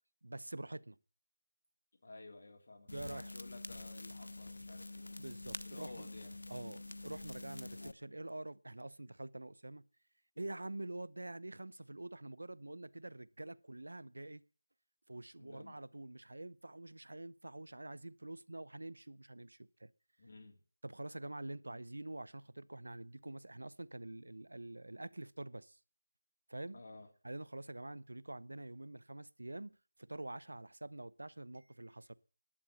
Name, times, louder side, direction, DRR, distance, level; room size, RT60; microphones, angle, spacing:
voice 1, 0.2-1.0 2.9-3.3 5.2-6.1 6.5-9.8 10.4-14.4 15.1-19.9 20.8-25.8 26.5-26.8 27.2-32.1, right 2 dB, 85° right, 0.8 m, -46 dB
voice 2, 2.0-5.1 5.6-6.8 15.4-15.8 20.2-20.6 26.7-27.1, left 2 dB, 40° left, 2.8 m, -54 dB
sound 1, 2.9-7.9, left 2 dB, 75° left, 1.0 m, -47 dB
11.5 x 8.7 x 9.6 m
figure-of-eight pair, 175°, 0 cm